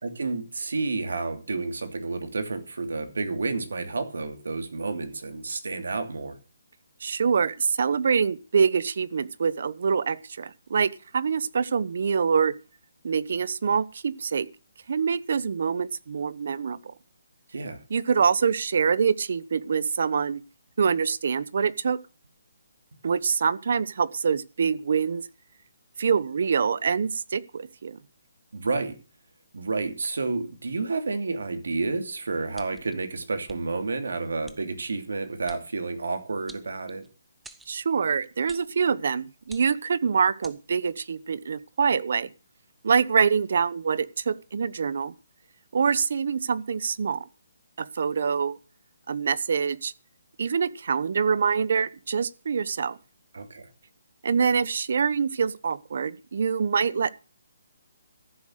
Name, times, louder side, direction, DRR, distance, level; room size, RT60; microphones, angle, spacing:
voice 1, 0.0-6.4 17.5-17.8 28.5-29.0 29.5-37.0 53.3-53.7, right 3 dB, 80° right, 2.8 m, -30 dB
voice 2, 7.0-12.5 13.0-14.5 14.9-16.9 17.9-20.4 20.8-22.0 23.0-25.3 26.0-28.0 37.7-42.3 42.8-45.1 45.7-47.3 47.8-48.6 49.1-49.9 50.4-53.0 54.2-57.1, right 6 dB, 55° right, 0.9 m, -25 dB
sound 1, 32.5-32.9 33.5-33.6 34.5-34.6 35.5-35.6 36.5-37.1 37.4-37.7 38.5-38.7 39.4-39.9 40.4-40.6, right 3 dB, 5° right, 0.7 m, -48 dB
14.0 x 7.5 x 6.4 m
hypercardioid pair, 165°, 0 cm